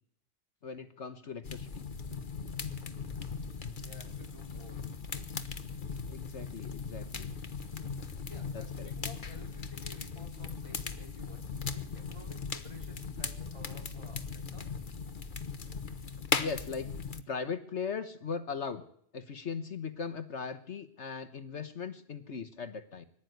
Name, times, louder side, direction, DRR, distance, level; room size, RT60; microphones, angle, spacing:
voice 1, 0.6-1.9 6.1-7.3 8.5-8.9 16.4-17.0 17.3-18.8 19.1-23.1, left 5 dB, 60° left, 9 dB, 1.5 m, -39 dB
sound 1, 1.4-17.2, left 5 dB, 40° left, 1.3 m, -38 dB
voice 2, 3.8-4.8 5.1-5.4 8.3-14.7, equal, 25° right, 1 dB, 5.0 m, -54 dB
24.0 x 13.0 x 9.4 m, 0.65 s
omnidirectional pair, 1.3 m